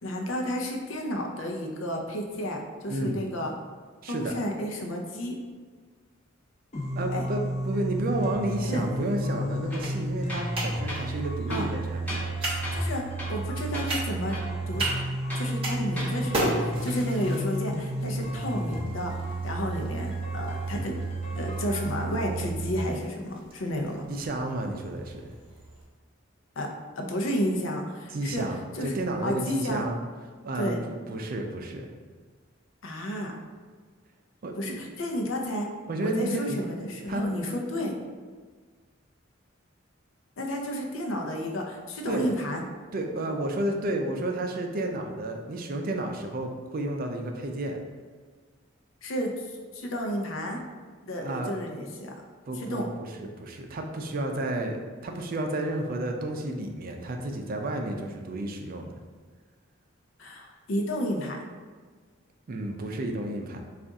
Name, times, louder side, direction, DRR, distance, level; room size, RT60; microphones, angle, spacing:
voice 1, 0.0-3.5 4.1-5.4 7.1-7.2 8.7-9.0 11.5-11.7 12.7-13.0 13.3-14.4 14.7-14.8 15.4-19.1 19.4-21.0 21.3-24.0 26.6-26.7 27.0-28.4 28.7-28.9 29.2-29.8 30.6-30.8 32.8-33.3 34.6-35.7 36.0-37.9 40.4-42.6 49.0-49.5 49.7-50.6 51.0-52.1 52.6-52.9 60.2-61.4, equal, 75° left, 2 dB, 0.6 m, -31 dB
voice 2, 4.0-4.3 6.9-12.2 24.1-25.3 28.1-30.0 30.4-31.9 34.4-34.9 35.9-36.6 37.1-37.2 42.1-42.3 42.9-47.8 51.2-51.5 52.5-58.9 62.5-63.6, right 1 dB, 45° right, 3 dB, 0.4 m, -31 dB
sound 1, 6.7-22.7, right 1 dB, 35° left, 0.7 m, -32 dB
sound 2, 7.9-25.8, right 1 dB, 30° right, 0.9 m, -38 dB
Tools, 9.7-9.9 10.3-10.6 10.9-11.1 11.5-12.4 12.6-12.9 13.2-13.5 13.7-13.9 14.3-15.5 15.9-16.2, left 1 dB, 10° left, 0.9 m, -37 dB
4.0 x 2.4 x 3.5 m, 1.5 s
head